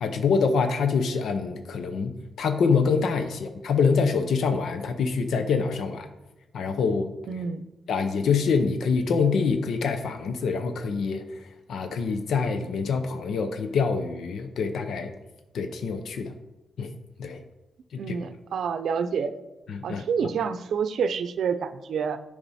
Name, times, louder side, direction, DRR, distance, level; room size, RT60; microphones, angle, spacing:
voice 1, 0.0-6.1 6.5-7.1 7.9-15.1 15.5-16.3 16.8-16.9 17.2-17.4 18.1-18.2 19.7-20.3, left 5 dB, 75° left, 8 dB, 0.7 m, -25 dB
voice 2, 7.3-7.6 17.9-19.3 19.8-22.2, right 6 dB, 70° right, 11 dB, 0.6 m, -28 dB
10.0 x 5.0 x 4.2 m, 1.0 s
wide cardioid pair, 150°, 0 cm